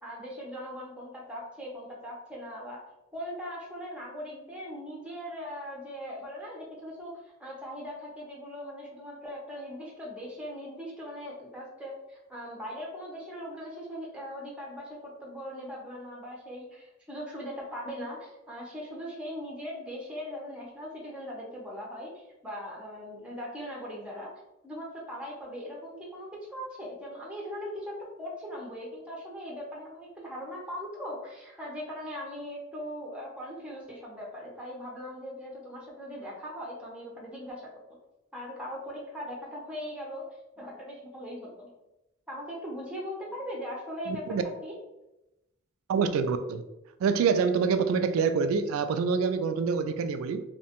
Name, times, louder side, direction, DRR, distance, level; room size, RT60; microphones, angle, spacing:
voice 1, 0.0-2.8 3.1-24.3 24.6-27.9 28.2-37.7 38.3-40.3 40.6-41.7 42.3-44.2 44.6-44.7, equal, 5° right, -3 dB, 0.5 m, -40 dB
voice 2, 44.1-44.4 45.9-46.6 47.0-50.4, right 5 dB, 90° right, 10 dB, 0.3 m, -26 dB
2.8 x 2.1 x 2.8 m, 0.93 s
head